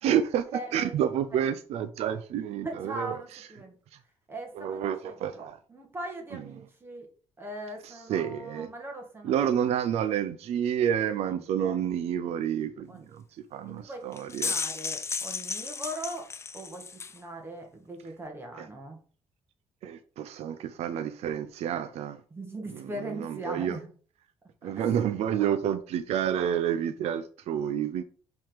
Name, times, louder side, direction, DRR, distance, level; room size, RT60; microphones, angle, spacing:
voice 1, 0.0-3.5 3.9-4.0 4.5-5.6 6.3-6.4 7.8-8.7 9.2-14.5 18.6-18.7 19.8-22.2 22.7-23.8 24.6-28.0, right 9 dB, 75° right, 0.5 m, -29 dB
voice 2, 0.5-0.9 2.6-3.8 4.3-7.1 7.4-9.3 11.6-11.8 12.9-13.1 13.8-16.3 16.5-19.0 22.3-23.9 24.6-24.9, right 1 dB, 20° right, 1.7 m, -40 dB
sound 1, 14.1-17.2, left 5 dB, 25° left, 0.4 m, -34 dB
5.5 x 3.7 x 5.0 m
cardioid pair, 120°, 11 cm